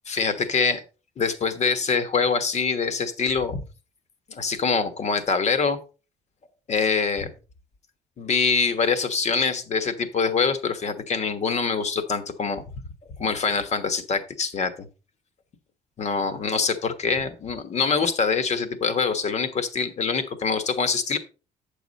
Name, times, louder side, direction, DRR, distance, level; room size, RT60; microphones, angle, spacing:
voice 1, 0.1-0.8 1.2-3.6 4.3-5.8 6.7-7.3 8.2-12.6 13.2-14.9 16.0-21.2, left 5 dB, 45° left, 10 dB, 1.4 m, -24 dB
8.8 x 7.0 x 4.1 m, 0.33 s
cardioid pair, 110°, 16 cm